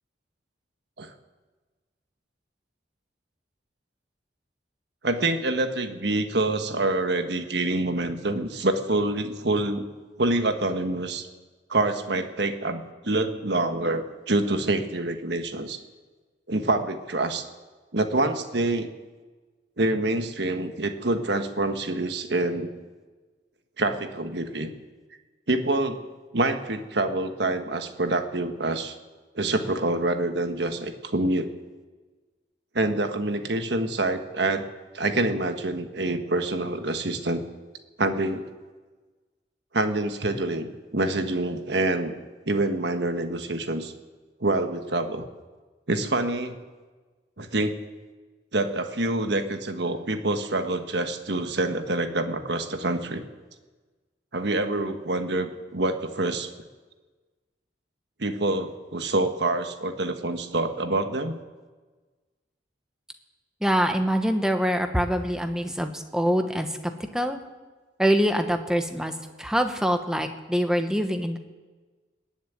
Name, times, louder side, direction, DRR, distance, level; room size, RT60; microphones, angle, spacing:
voice 1, 5.0-9.8 10.2-11.3 11.7-15.8 16.5-17.4 17.9-18.9 19.8-22.7 23.8-24.7 25.5-26.1 26.3-28.9 29.3-31.5 32.7-34.7 34.9-37.4 38.0-38.4 39.7-42.2 42.5-43.9 44.4-45.3 45.9-46.6 47.4-47.7 48.5-53.2 54.3-56.5 58.2-61.4, right 2 dB, 65° right, 7 dB, 1.3 m, -26 dB
voice 2, 63.6-66.8 67.1-67.4 68.0-69.1 69.4-71.4, equal, 5° right, 6 dB, 1.0 m, -24 dB
20.5 x 7.3 x 9.3 m, 1.3 s
head